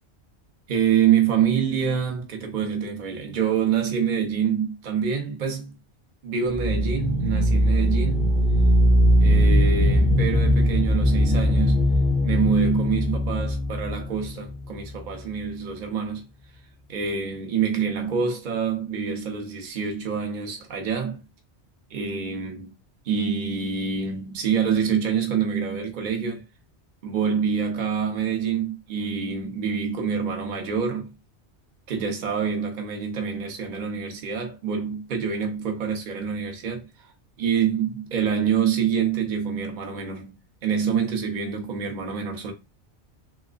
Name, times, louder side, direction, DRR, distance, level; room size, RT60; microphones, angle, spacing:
voice 1, 0.7-5.8 6.2-8.4 9.2-11.8 12.2-16.2 16.9-21.2 21.9-22.7 23.0-26.4 27.0-31.1 31.9-36.9 37.4-42.5, right 7 dB, 50° right, 0.8 m, -26 dB
sound 1, 6.5-15.2, equal, ahead, 0.5 m, -20 dB
3.2 x 3.1 x 2.4 m
omnidirectional pair, 1.1 m